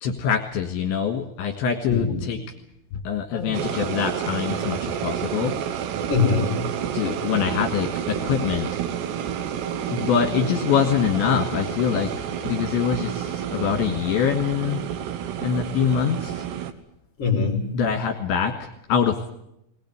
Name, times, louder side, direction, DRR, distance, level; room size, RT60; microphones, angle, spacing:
voice 1, 0.0-2.4 2.9-5.5 6.9-8.7 9.9-12.1 12.5-14.8 15.4-16.4 17.7-19.3, left 7 dB, 70° left, 3 dB, 3.6 m, -24 dB
voice 2, 1.9-2.3 3.3-3.8 6.1-6.7 10.1-10.5 17.2-17.8, left 5 dB, 35° left, 3 dB, 3.0 m, -24 dB
sound 1, 3.5-16.7, right 9 dB, 70° right, 3.0 m, -29 dB
21.5 x 19.0 x 9.3 m, 0.81 s
omnidirectional pair, 5.9 m